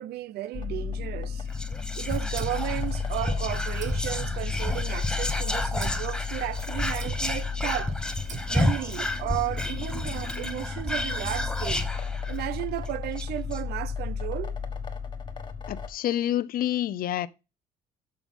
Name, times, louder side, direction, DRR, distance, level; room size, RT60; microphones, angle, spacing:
voice 1, 0.0-1.5 2.0-8.0 8.5-11.9 12.3-14.6, right 15 dB, 75° right, 0.6 m, -34 dB
sound 1, 0.5-15.9, left 6 dB, 25° left, 1.5 m, -33 dB
Whispering, 1.5-12.5 12.9-13.0 13.2-13.6, left 1 dB, 5° left, 1.1 m, -31 dB
sound 2, 2.4-3.4 3.8-5.1 5.8-6.2 7.0-7.5 8.3-8.9, right 6 dB, 45° right, 0.8 m, -40 dB
voice 2, 15.7-17.3, left 12 dB, 60° left, 0.6 m, -28 dB
12.0 x 5.8 x 3.7 m
cardioid pair, 110°, 17 cm